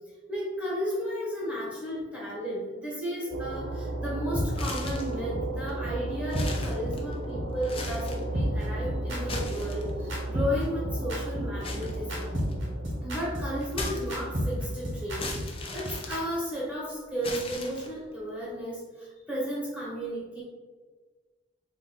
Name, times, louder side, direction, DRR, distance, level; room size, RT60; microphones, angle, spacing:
voice 1, 0.3-12.3 13.0-20.4, equal, 5° right, -6 dB, 1.4 m, -34 dB
sound 1, 3.3-15.3, right 1 dB, 55° right, 0.5 m, -35 dB
sound 2, 4.3-4.4 4.8-4.9 5.3-5.4 5.8-5.9 6.3-6.5 6.8-6.9 7.3-7.4 7.8-7.9 8.3-16.2, equal, 85° right, 1.2 m, -32 dB
sound 3, 4.5-5.2 5.7-5.8 6.2-7.2 7.6-8.3 9.1-10.1 11.6-12.7 13.7-14.5 15.2-16.7 17.2-18.1, left 2 dB, 30° left, 0.6 m, -38 dB
4.0 x 2.7 x 4.0 m, 1.4 s
head